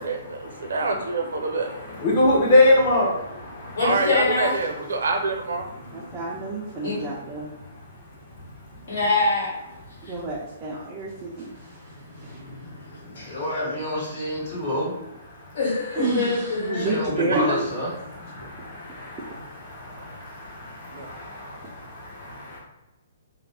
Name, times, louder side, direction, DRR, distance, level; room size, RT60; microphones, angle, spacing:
voice 1, 0.0-1.7 3.8-5.7 20.9-21.1, right 3 dB, 85° right, 2 dB, 0.6 m, -26 dB
voice 2, 1.5-3.8 18.3-19.4 19.7-22.6, left 1 dB, 25° left, -5 dB, 0.8 m, -24 dB
voice 3, 3.7-4.6 6.8-7.0 8.9-9.5 13.1-13.4 15.5-16.9, left 3 dB, 70° left, -4 dB, 1.4 m, -24 dB
voice 4, 5.9-7.5 10.1-11.8 12.2-12.4 16.0-17.7, right 2 dB, 15° right, -6 dB, 0.4 m, -29 dB
voice 5, 13.3-14.9 16.7-17.9, left 1 dB, 45° left, -8 dB, 1.3 m, -28 dB
2.4 x 2.1 x 3.3 m, 0.98 s
hypercardioid pair, 165°, 0 cm